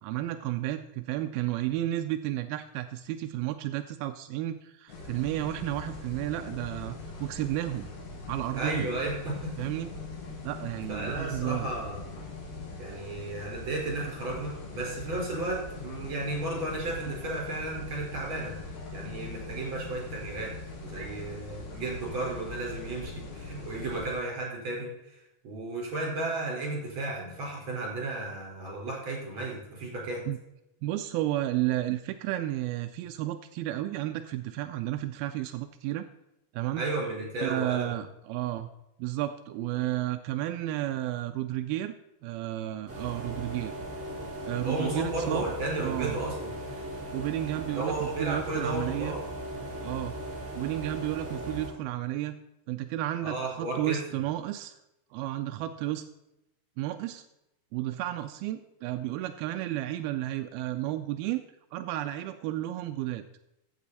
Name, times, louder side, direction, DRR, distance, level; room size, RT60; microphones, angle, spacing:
voice 1, 0.0-7.9 8.3-8.9 9.6-9.9 10.4-11.7 30.3-30.4 30.8-36.0 36.5-36.8 37.4-38.7 39.0-41.9 42.2-43.7 44.4-45.5 45.8-46.2 47.1-49.2 49.8-50.2 50.6-52.4 52.7-54.7 55.1-56.0 56.8-57.2 57.7-61.4 61.7-63.3, right 14 dB, 85° right, 8 dB, 2.2 m, -32 dB
sound 1, 4.9-24.2, left 3 dB, 65° left, 3.9 m, -41 dB
voice 2, 8.5-9.7 10.3-10.5 10.9-12.2 12.8-18.5 18.9-20.5 20.8-25.2 25.4-30.2 36.8-38.0 44.6-46.5 47.7-49.2 53.2-54.0, right 2 dB, 30° right, -2 dB, 4.9 m, -33 dB
sound 2, 42.9-51.7, right 1 dB, 5° right, 2.5 m, -38 dB
14.5 x 8.0 x 4.1 m, 0.88 s
omnidirectional pair, 4.9 m